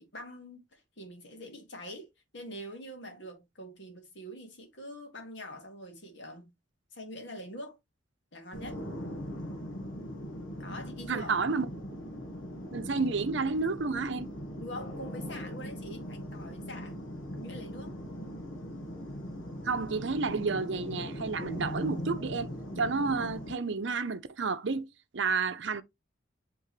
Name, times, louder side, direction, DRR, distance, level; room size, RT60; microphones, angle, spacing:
voice 1, 0.0-2.1 2.3-6.5 6.9-7.8 8.3-8.8 10.6-11.4 14.6-17.0 17.3-17.9, equal, 60° left, 2.1 m, -44 dB
sound 1, 8.5-23.5, equal, 80° left, 1.5 m, -40 dB
voice 2, 11.1-11.7 12.7-14.3 19.6-22.5 22.8-24.9 25.1-25.8, right 4 dB, 65° right, 0.7 m, -30 dB
8.0 x 3.7 x 3.2 m
head